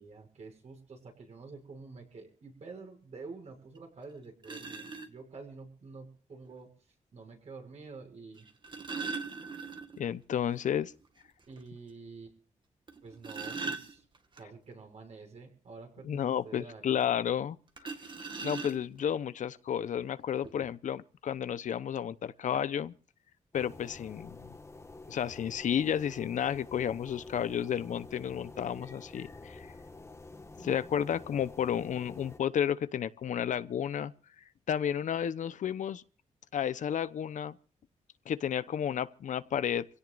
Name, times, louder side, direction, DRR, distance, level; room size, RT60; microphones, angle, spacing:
voice 1, 0.0-6.7 7.1-8.4 11.5-12.3 13.0-14.1 14.4-16.9, right 4 dB, 60° right, 6.5 m, -48 dB
sound 1, 3.7-3.8 4.4-5.1 6.5-6.6 8.4-10.1 10.4-10.5 10.9-11.0 11.6-11.7 12.9-14.4 17.8-19.1 20.0-20.1 20.4-20.7, right 4 dB, 35° right, 1.9 m, -39 dB
voice 2, 10.0-10.9 16.0-17.6 17.8-17.9 18.4-22.9 23.5-24.4 25.1-29.7 30.6-34.1 34.7-36.0 36.5-37.6 38.3-39.9, left 9 dB, 75° left, 0.8 m, -32 dB
sound 2, 23.5-32.4, left 2 dB, 20° left, 1.5 m, -49 dB
27.0 x 17.0 x 2.5 m
wide cardioid pair, 110°, 13 cm